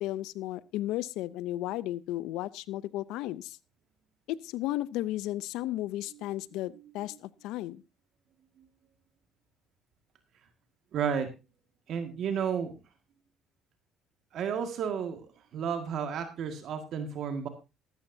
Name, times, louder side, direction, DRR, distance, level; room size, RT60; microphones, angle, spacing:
voice 1, 0.0-3.6 4.3-7.8, left 15 dB, 80° left, 20 dB, 0.5 m, -34 dB
voice 2, 10.9-11.3 11.9-12.7 14.3-15.3 15.5-17.5, right 7 dB, 60° right, 7 dB, 1.8 m, -32 dB
14.0 x 13.0 x 2.7 m, 0.26 s
supercardioid pair, 85°, 0 cm